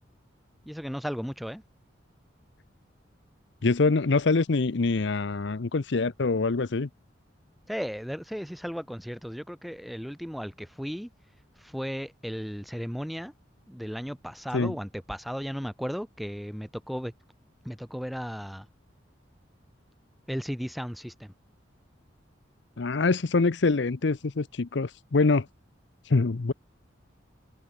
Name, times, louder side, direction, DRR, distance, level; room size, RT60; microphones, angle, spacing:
voice 1, 0.7-1.6 7.7-11.1 11.6-13.3 13.7-17.1 17.7-18.7 20.3-21.3, equal, ahead, 1.9 m, -35 dB
voice 2, 3.6-6.9 14.5-14.7 22.8-25.5 26.1-26.5, left 3 dB, 65° left, 0.7 m, -24 dB
head